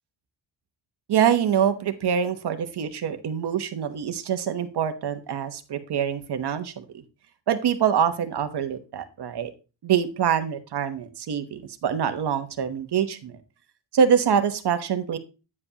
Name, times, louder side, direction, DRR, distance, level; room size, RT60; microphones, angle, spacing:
voice 1, 1.1-7.0 7.5-9.5 9.8-13.4 13.9-15.2, right 8 dB, 60° right, 8 dB, 1.1 m, -25 dB
9.6 x 7.8 x 2.9 m, 0.31 s
wide cardioid pair, 150°, 45 cm